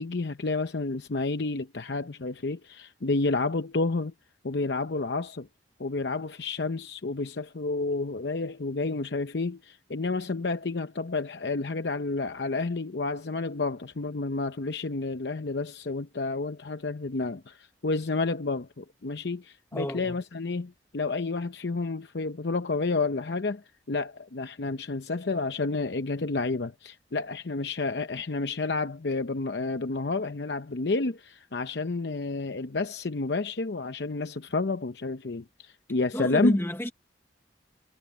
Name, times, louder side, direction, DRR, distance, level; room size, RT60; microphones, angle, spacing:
voice 1, 0.0-4.1 4.4-5.5 5.8-36.6, left 3 dB, 70° left, 0.7 m, -30 dB
voice 2, 19.7-20.2 36.1-36.9, equal, 15° left, 1.1 m, -29 dB
head